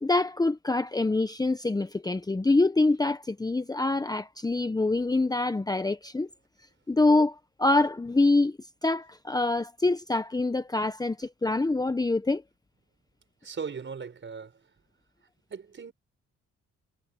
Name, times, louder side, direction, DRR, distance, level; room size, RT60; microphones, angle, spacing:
voice 1, 0.0-6.3 6.9-12.4, left 2 dB, 15° left, 1.0 m, -25 dB
voice 2, 13.4-14.7 15.2-15.9, right 5 dB, 40° right, 5.2 m, -39 dB
cardioid pair, 90°, 30 cm